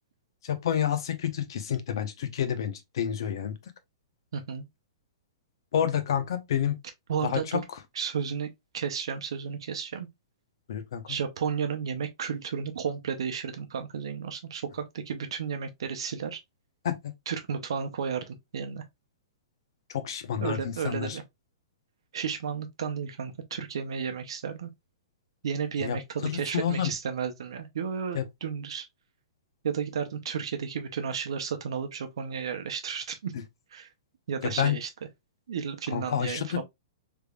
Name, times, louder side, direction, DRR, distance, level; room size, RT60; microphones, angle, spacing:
voice 1, 0.4-3.5 5.7-6.8 7.2-7.6 10.7-11.2 16.8-17.1 19.9-21.2 25.8-26.0 26.2-26.9 28.1-28.2 34.4-34.8 35.9-36.6, left 9 dB, 60° left, 0.8 m, -29 dB
voice 2, 4.3-4.6 7.1-7.6 7.9-10.1 11.1-16.4 17.3-18.8 20.4-21.2 22.1-24.7 25.4-28.9 29.6-33.3 33.7-33.9 34.3-34.9 35.5-36.6, right 7 dB, 75° right, 0.7 m, -33 dB
3.5 x 3.3 x 2.3 m
hypercardioid pair, 160°, 3 cm